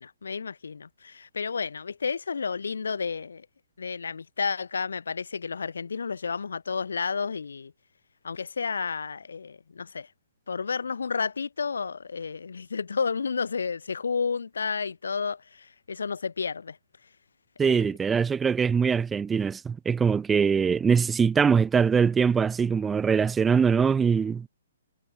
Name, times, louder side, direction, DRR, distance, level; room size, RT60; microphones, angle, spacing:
voice 1, 0.0-3.5 3.8-7.7 8.2-10.1 10.5-16.8 17.6-17.9, left 5 dB, 85° left, 2.5 m, -31 dB
voice 2, 17.6-24.5, right 6 dB, 10° right, 0.3 m, -22 dB
hypercardioid pair, 145°, 0 cm